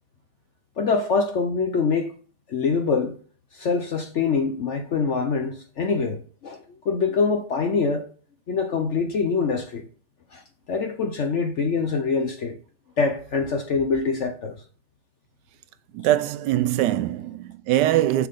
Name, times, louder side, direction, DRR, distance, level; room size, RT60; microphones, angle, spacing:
voice 1, 0.8-2.1 2.5-3.1 3.5-8.1 8.5-9.9 10.3-10.4 10.7-12.6 13.0-14.6, left 5 dB, 60° left, 0.8 m, -24 dB
voice 2, 15.9-18.3, right 13 dB, 75° right, 1.1 m, -22 dB
7.1 x 6.2 x 5.2 m
omnidirectional pair, 1.9 m